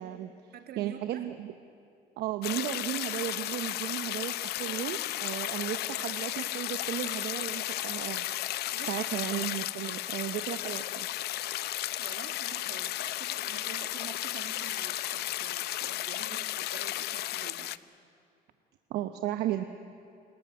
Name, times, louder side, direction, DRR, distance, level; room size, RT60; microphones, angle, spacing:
voice 1, 0.0-1.5 2.2-11.1 18.9-19.6, right 12 dB, 80° right, 8 dB, 0.9 m, -35 dB
voice 2, 0.5-1.3 8.7-9.1 12.0-17.7, right 8 dB, 65° right, 6 dB, 1.9 m, -48 dB
sound 1, 2.4-17.8, left 15 dB, 75° left, 0.6 m, -34 dB
29.0 x 14.0 x 9.4 m, 2.4 s
cardioid pair, 110°, 17 cm